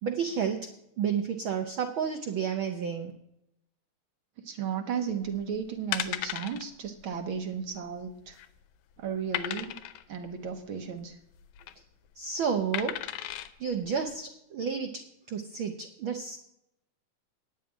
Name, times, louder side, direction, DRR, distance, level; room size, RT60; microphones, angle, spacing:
voice 1, 0.0-0.7 1.0-3.1 12.2-13.0 13.6-15.0 15.3-16.4, right 7 dB, 90° right, 5 dB, 1.1 m, -31 dB
voice 2, 4.4-8.4 9.0-9.7 10.1-11.2, right 7 dB, 70° right, 5 dB, 1.3 m, -34 dB
sound 1, 5.3-5.4 5.9-6.6 7.0-7.2 7.4-7.5 8.1-8.6 9.3-10.0 11.4-11.7 12.7-13.5 14.1-14.2, left 13 dB, 80° left, 2.1 m, -34 dB
9.6 x 7.5 x 8.8 m, 0.82 s
omnidirectional pair, 3.5 m